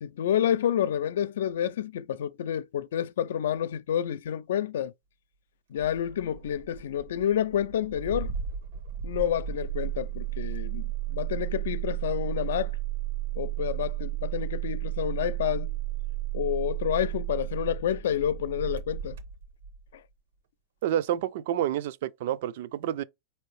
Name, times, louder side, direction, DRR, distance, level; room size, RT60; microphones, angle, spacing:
voice 1, 0.0-4.9 5.7-8.3 9.0-12.7 13.4-15.7 16.3-19.2, left 10 dB, 85° left, 0.3 m, -29 dB
Engine starting, 5.8-19.9, right 12 dB, 80° right, 0.9 m, -33 dB
voice 2, 20.8-23.0, right 11 dB, 55° right, 0.3 m, -29 dB
4.6 x 2.8 x 3.1 m
supercardioid pair, 175°, 0 cm